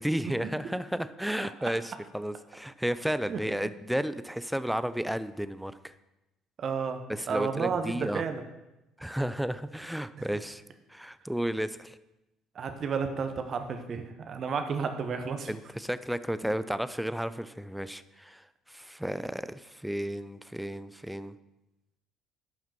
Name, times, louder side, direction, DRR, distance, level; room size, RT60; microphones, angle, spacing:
voice 1, 0.0-5.9 7.1-8.2 9.0-10.6 10.9-12.0 15.5-21.3, equal, ahead, 13 dB, 0.4 m, -33 dB
voice 2, 6.6-7.0 7.3-8.4 12.5-15.5, right 5 dB, 45° right, 7 dB, 1.0 m, -32 dB
11.5 x 5.7 x 4.6 m, 0.96 s
figure-of-eight pair, 50°, 0 cm